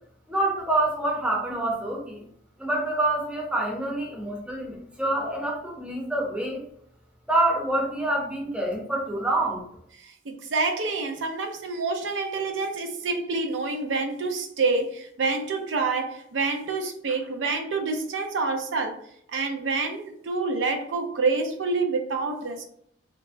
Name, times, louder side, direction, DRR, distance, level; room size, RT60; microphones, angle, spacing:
voice 1, 0.3-2.2 2.6-6.6 7.3-9.6, right 1 dB, 5° right, -1 dB, 0.6 m, -26 dB
voice 2, 10.0-19.0 19.3-22.6, right 3 dB, 75° right, 4 dB, 0.5 m, -27 dB
3.2 x 2.1 x 2.5 m, 0.67 s
head